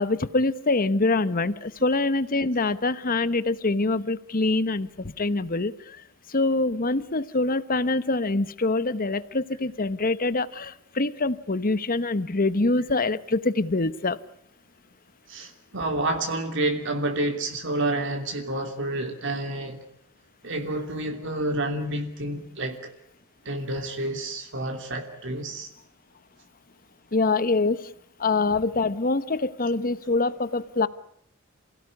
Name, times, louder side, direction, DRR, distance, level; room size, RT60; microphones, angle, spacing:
voice 1, 0.0-6.0 6.3-14.2 27.1-27.9 28.2-30.9, left 3 dB, 45° left, 1.1 m, -25 dB
voice 2, 15.3-19.8 20.4-22.9 23.4-25.7, right 2 dB, 65° right, 3.0 m, -29 dB
29.0 x 17.0 x 9.8 m
head